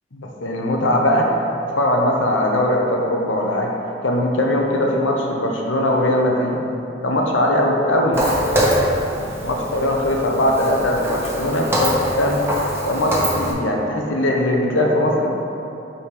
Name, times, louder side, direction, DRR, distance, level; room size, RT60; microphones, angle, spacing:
voice 1, 0.1-1.3 1.8-3.7 4.0-6.6 7.0-8.2 9.0-12.5 12.9-15.3, left 1 dB, 85° left, 0 dB, 0.9 m, -20 dB
Walk footsteps, 8.1-13.5, equal, 15° right, 1.0 m, -23 dB
5.3 x 5.1 x 4.9 m, 2.8 s
head